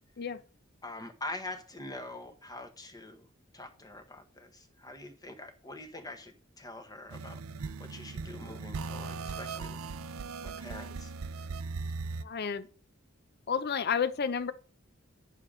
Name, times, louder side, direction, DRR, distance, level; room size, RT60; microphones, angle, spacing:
voice 1, 0.8-3.3 3.5-9.8 10.4-11.1, left 2 dB, 20° left, 1.1 m, -44 dB
sound 1, 7.1-12.2, right 4 dB, 85° right, 0.5 m, -39 dB
voice 2, 12.2-12.7 13.5-14.5, left 6 dB, 50° left, 0.6 m, -31 dB
9.9 x 6.7 x 3.8 m
head